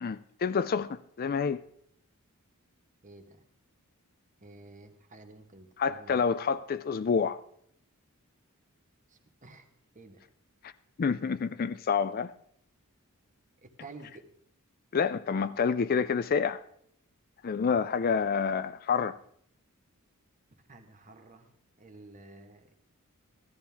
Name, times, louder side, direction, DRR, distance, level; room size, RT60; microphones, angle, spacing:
voice 1, 0.0-1.6 5.8-7.4 10.6-10.7 11.0-12.3 14.9-16.6 17.4-19.2, left 6 dB, 45° left, 0.4 m, -28 dB
voice 2, 3.0-3.4 4.4-6.2 9.1-9.7 9.9-10.2 13.6-14.2 17.7-17.9 20.7-21.5 21.8-22.7, right 2 dB, 35° right, 1.4 m, -51 dB
14.5 x 13.0 x 3.5 m
head